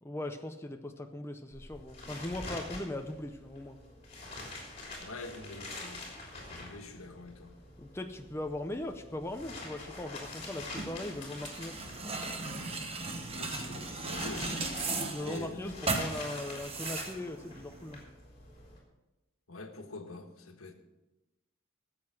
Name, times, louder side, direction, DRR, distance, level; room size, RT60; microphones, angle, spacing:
voice 1, 0.0-3.8 7.8-11.8 15.1-18.0, left 1 dB, 10° left, 5 dB, 0.6 m, -39 dB
sound 1, 1.5-18.8, left 2 dB, 30° left, 3.3 m, -46 dB
voice 2, 5.0-6.0 6.5-7.5 13.4-14.6 15.2-15.8 19.5-20.7, left 3 dB, 85° left, 5 dB, 1.5 m, -45 dB
sound 2, 10.4-18.0, right 3 dB, 30° right, 1.2 m, -37 dB
13.5 x 7.7 x 6.1 m, 1.0 s
head